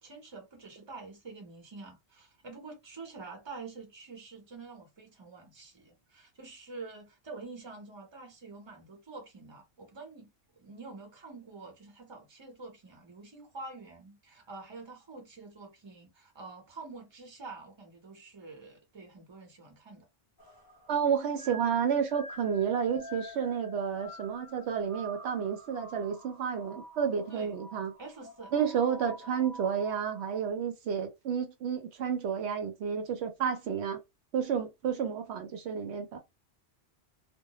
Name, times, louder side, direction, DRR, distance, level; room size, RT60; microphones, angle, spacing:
voice 1, 0.0-10.3 10.6-20.1 27.3-27.7 28.0-28.5, right 3 dB, 25° right, 0.9 m, -47 dB
sound 1, 20.4-30.5, equal, 30° left, 0.4 m, -48 dB
voice 2, 20.9-27.9 28.5-34.0 34.3-36.2, right 7 dB, 75° right, 0.8 m, -31 dB
2.1 x 2.1 x 2.9 m
omnidirectional pair, 1.1 m